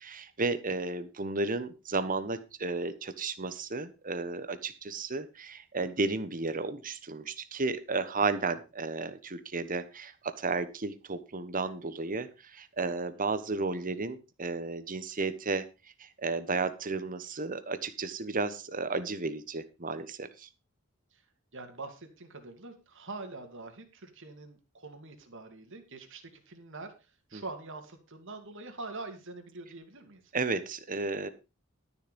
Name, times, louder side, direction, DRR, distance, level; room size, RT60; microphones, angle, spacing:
voice 1, 0.0-15.7 16.0-20.5 27.3-27.4 30.3-31.3, right 3 dB, 40° right, 12 dB, 1.2 m, -33 dB
voice 2, 21.5-30.3, right 3 dB, 60° right, 6 dB, 2.6 m, -44 dB
12.5 x 7.1 x 5.3 m, 0.29 s
head